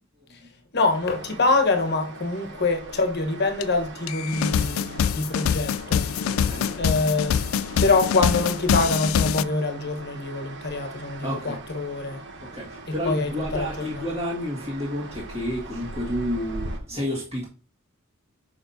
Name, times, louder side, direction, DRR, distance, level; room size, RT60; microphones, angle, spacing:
voice 1, 0.7-6.1 6.8-7.4 7.8-12.2 12.9-14.0, left 3 dB, 55° left, 1.1 m, -25 dB
sound 1, 0.9-16.8, right 2 dB, 60° right, 0.9 m, -40 dB
sound 2, 3.6-3.7 4.1-9.4, left 8 dB, 75° left, 0.3 m, -24 dB
voice 2, 6.3-6.7 11.2-11.6 12.4-17.5, equal, 30° right, 1.7 m, -30 dB
6.8 x 5.6 x 2.7 m
head